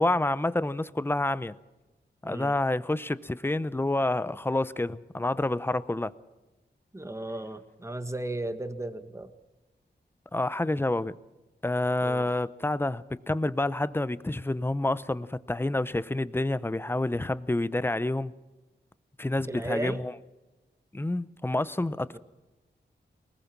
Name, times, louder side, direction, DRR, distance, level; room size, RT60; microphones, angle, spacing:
voice 1, 0.0-1.5 2.2-6.1 10.3-11.1 11.6-18.3 19.2-20.1 20.9-22.2, left 2 dB, 10° left, 0.7 m, -28 dB
voice 2, 2.2-2.5 6.9-9.3 12.0-12.3 19.5-20.0 22.1-22.2, right 1 dB, 15° right, 1.6 m, -35 dB
23.0 x 20.5 x 6.0 m
wide cardioid pair, 100°, 19 cm